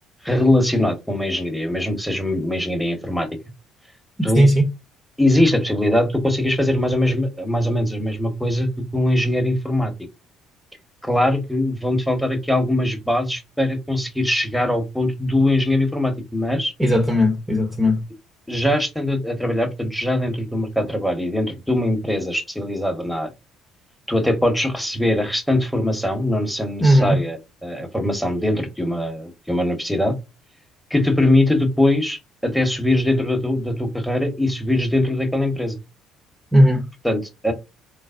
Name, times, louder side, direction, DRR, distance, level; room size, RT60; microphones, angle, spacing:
voice 1, 0.2-3.3 4.2-4.5 5.2-9.9 11.0-16.7 18.5-23.3 24.1-30.2 30.9-35.8 37.0-37.5, left 1 dB, 5° left, 1.1 m, -21 dB
voice 2, 4.4-4.7 16.8-18.0 26.8-27.2 36.5-36.9, equal, 15° right, 0.9 m, -16 dB
3.9 x 2.0 x 2.5 m
hypercardioid pair, 60°, 0 cm